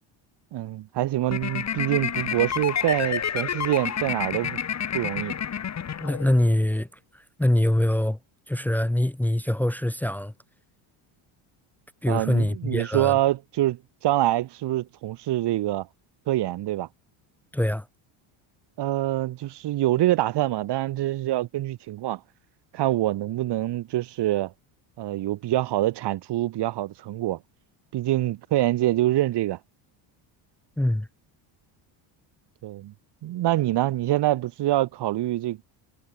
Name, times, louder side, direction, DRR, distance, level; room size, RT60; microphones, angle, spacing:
voice 1, 0.5-4.6 4.9-5.4 12.1-15.9 16.3-16.9 18.8-22.2 22.7-24.5 25.0-27.4 27.9-29.6 32.6-32.9 33.2-35.6, right 15 dB, 55° right, 2.4 m, -25 dB
sound 1, 1.3-6.5, left 8 dB, 35° left, 6.5 m, -29 dB
voice 2, 6.0-6.9 7.1-8.2 8.5-10.3 12.0-13.1 17.5-17.9 30.8-31.1, left 1 dB, 5° left, 1.5 m, -24 dB
cardioid pair, 150°, 49 cm